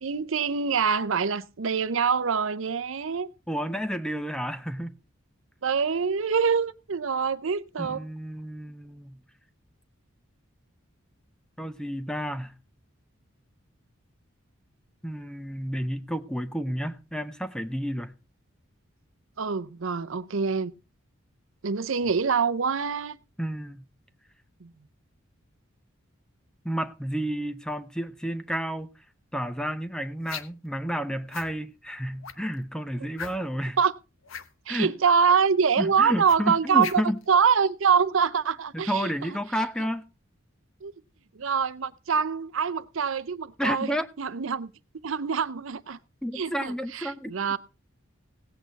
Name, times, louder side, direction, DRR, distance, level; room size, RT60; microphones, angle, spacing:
voice 1, 0.0-3.3 5.6-8.1 19.4-20.7 21.6-23.2 24.6-24.7 33.0-33.1 33.8-33.9 34.7-37.0 37.3-39.4 39.8-39.9 40.8-40.9 41.4-44.7 45.0-46.0 46.3-47.6, right 6 dB, 70° right, 0.6 m, -25 dB
voice 2, 3.5-4.9 7.8-9.2 11.6-12.5 15.0-18.1 23.4-23.8 26.6-28.9 29.3-33.8 34.7-34.9 35.8-37.2 38.7-40.0 43.6-44.1 46.2-47.3, equal, 5° left, 0.7 m, -31 dB
sound 1, 30.2-30.7 31.3-31.5 32.2-32.5 33.1-33.6 34.2-34.5 36.3-37.2, left 7 dB, 75° left, 1.1 m, -38 dB
17.0 x 8.5 x 4.0 m
head